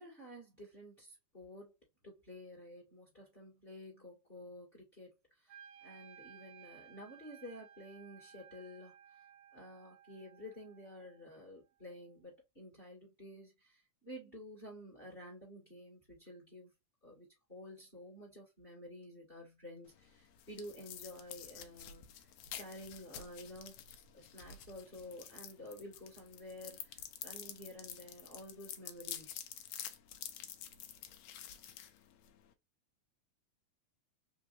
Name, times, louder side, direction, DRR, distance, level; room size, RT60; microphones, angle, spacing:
voice 1, 0.0-1.7 2.0-9.2 9.5-16.7 17.0-23.9 24.1-29.4, left 1 dB, 20° left, 1.8 m, -51 dB
Wind instrument woodwind instrument, 5.5-11.6, right 9 dB, 90° right, 2.0 m, -58 dB
sound 1, 19.9-32.5, left 10 dB, 75° left, 1.8 m, -49 dB
4.4 x 3.2 x 2.6 m
omnidirectional pair, 3.3 m